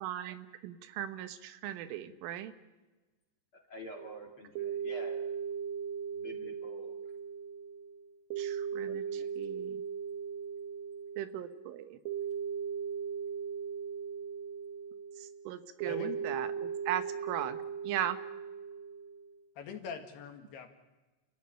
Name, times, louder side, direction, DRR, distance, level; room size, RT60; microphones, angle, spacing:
voice 1, 0.0-2.5 8.4-9.0 9.4-9.8 11.2-12.0 15.2-17.6 17.8-18.2, right 11 dB, 90° right, 11 dB, 3.8 m, -38 dB
voice 2, 3.5-5.3 6.1-6.9 8.9-9.3, equal, 40° left, 2 dB, 2.1 m, -48 dB
sound 1, 4.0-19.4, right 7 dB, 65° right, 3.3 m, -38 dB
voice 3, 15.9-16.2 19.6-20.7, left 7 dB, 65° left, 5 dB, 3.6 m, -42 dB
29.5 x 15.0 x 10.0 m, 1.2 s
omnidirectional pair, 5.5 m